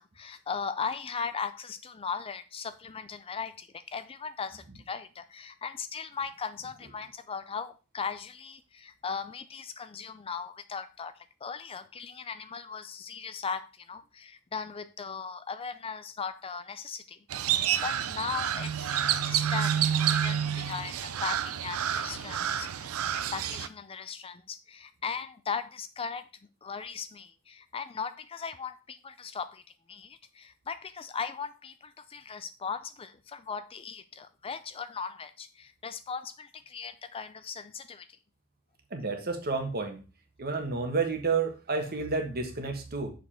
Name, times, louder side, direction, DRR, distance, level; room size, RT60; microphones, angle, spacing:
voice 1, 0.0-26.3 26.6-29.6 29.9-38.2, left 6 dB, 25° left, 0.4 m, -38 dB
Crow, 17.3-23.7, right 9 dB, 75° right, 0.5 m, -29 dB
voice 2, 38.9-40.0 40.4-43.1, right 4 dB, 45° right, 1.4 m, -30 dB
6.6 x 5.2 x 4.3 m
head